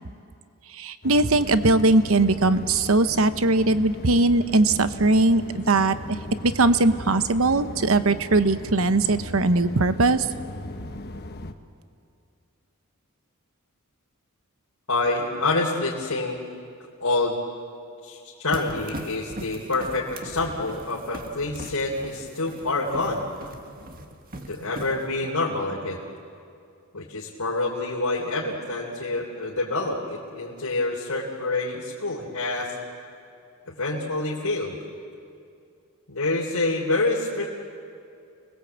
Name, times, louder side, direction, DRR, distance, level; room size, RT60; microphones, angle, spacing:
voice 1, 0.7-6.2 6.4-10.3, right 2 dB, 65° right, 11 dB, 1.0 m, -20 dB
sound 1, 1.0-11.5, left 1 dB, 45° left, 1.2 m, -37 dB
voice 2, 14.9-16.4 17.0-17.4 18.0-23.2 24.5-26.1 26.9-32.7 33.7-34.8 36.1-37.5, left 2 dB, 85° left, -4 dB, 3.5 m, -27 dB
sound 2, 18.5-25.3, right 1 dB, 40° right, 1.8 m, -40 dB
29.5 x 21.0 x 8.2 m, 2.5 s
head